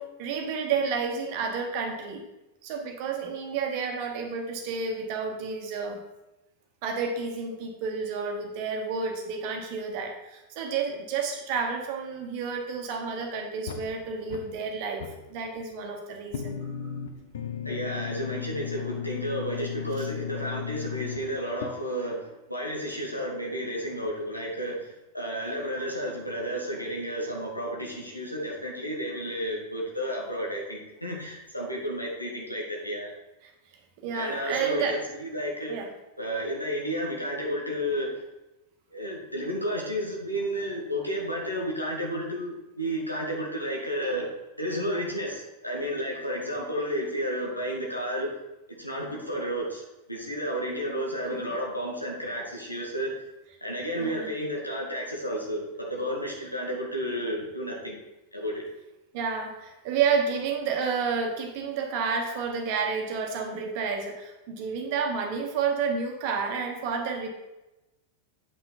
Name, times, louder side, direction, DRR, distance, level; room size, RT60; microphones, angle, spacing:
voice 1, 0.0-2.2 2.6-6.0 6.8-16.6 20.0-20.1 34.0-35.0 35.7-35.9 53.9-54.3 59.1-67.3, right 5 dB, 45° right, 3 dB, 1.4 m, -30 dB
sound 1, 13.7-14.7 15.0-15.9 16.3-21.7, left 8 dB, 60° left, 0.7 m, -36 dB
voice 2, 17.6-24.9 25.1-33.1 34.1-35.8 36.2-38.2 38.9-44.3 44.6-48.3 48.7-49.8 50.1-53.1 53.6-58.0 58.3-58.6, equal, 90° left, -2 dB, 1.9 m, -32 dB
8.4 x 5.7 x 4.1 m, 0.99 s
figure-of-eight pair, 90°, 0 cm